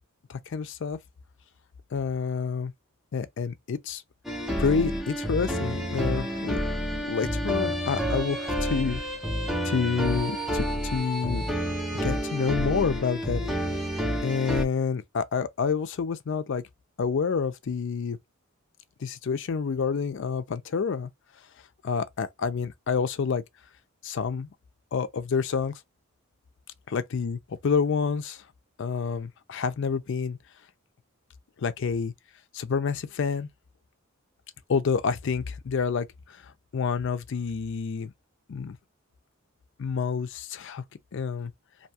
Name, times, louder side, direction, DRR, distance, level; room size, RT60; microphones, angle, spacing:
voice 1, 0.3-1.0 1.9-2.7 3.1-4.0 4.6-6.6 7.0-9.0 9.6-11.4 12.0-13.4 13.7-13.8 14.2-16.6 17.0-18.2 19.0-21.1 21.8-23.4 24.0-24.5 24.9-25.7 26.9-28.4 28.8-30.4 31.6-32.1 32.5-33.5 34.7-36.1 36.7-38.1 38.5-38.8 39.8-40.8 41.1-41.5, left 5 dB, 55° left, 0.4 m, -28 dB
sound 1, 4.2-14.6, equal, ahead, 0.5 m, -29 dB
2.6 x 2.2 x 2.7 m
head